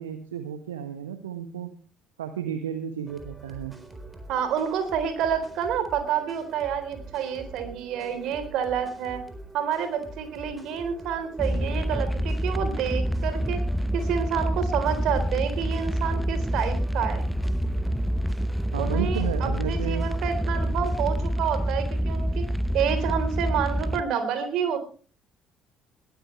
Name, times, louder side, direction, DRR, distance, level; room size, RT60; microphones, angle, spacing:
voice 1, 0.0-1.7 2.2-3.7 18.7-20.1, right 8 dB, 75° right, 9 dB, 1.2 m, -32 dB
sound 1, 3.1-21.3, right 2 dB, 15° right, 4.3 m, -45 dB
voice 2, 4.3-9.2 9.5-13.6 13.9-17.2 18.8-22.5 22.7-24.8, right 8 dB, 55° right, 9 dB, 3.8 m, -28 dB
sound 2, 11.4-24.0, equal, ahead, 0.8 m, -27 dB
21.5 x 14.5 x 3.2 m, 0.39 s
figure-of-eight pair, 50°, 0 cm